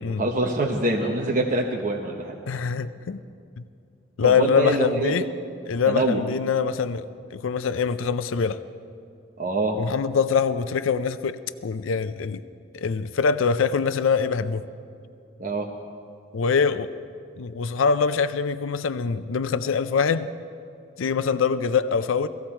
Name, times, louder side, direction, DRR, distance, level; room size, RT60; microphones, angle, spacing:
voice 1, 0.2-2.3 4.2-5.1 5.9-6.2 9.4-9.8 15.4-15.7, right 2 dB, 40° right, 0 dB, 0.9 m, -25 dB
voice 2, 2.5-3.2 3.6-3.7 4.2-5.3 5.7-7.1 7.3-8.6 9.7-12.4 12.7-14.6 16.3-16.9 17.4-20.3 21.0-22.3, left 5 dB, 85° left, 13 dB, 0.5 m, -24 dB
17.5 x 15.0 x 4.4 m, 2.5 s
head